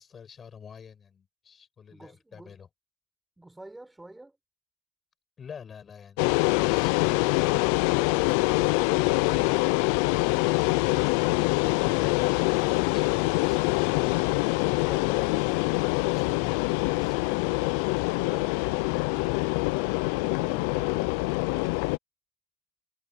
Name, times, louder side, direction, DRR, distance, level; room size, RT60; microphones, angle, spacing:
voice 1, 0.0-2.7 5.4-6.9 11.7-17.6, left 7 dB, 30° left, 7.8 m, -47 dB
voice 2, 1.9-2.6 3.4-4.4 7.7-9.6 11.1-11.3 18.2-19.7 20.4-21.8, right 2 dB, 10° right, 6.0 m, -50 dB
sound 1, 6.2-22.0, left 25 dB, 80° left, 0.5 m, -25 dB
cardioid pair, 125°, 0 cm